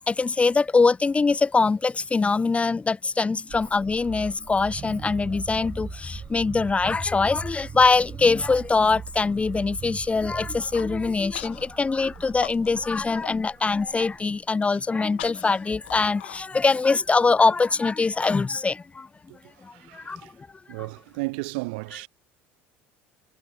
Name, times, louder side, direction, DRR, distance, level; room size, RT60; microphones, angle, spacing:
voice 1, 0.1-19.1 19.6-20.5, left 4 dB, 20° left, 1.1 m, -23 dB
sound 1, 3.5-14.4, right 7 dB, 35° right, 2.2 m, -40 dB
Human voice, 10.6-10.9 11.3-11.7 12.0-12.9 13.2-13.3 13.7-14.1 14.6-17.5, left 15 dB, 75° left, 3.8 m, -41 dB
voice 2, 19.3-20.4 20.7-22.1, right 27 dB, 70° right, 7.9 m, -34 dB
hypercardioid pair, 65°, 6 cm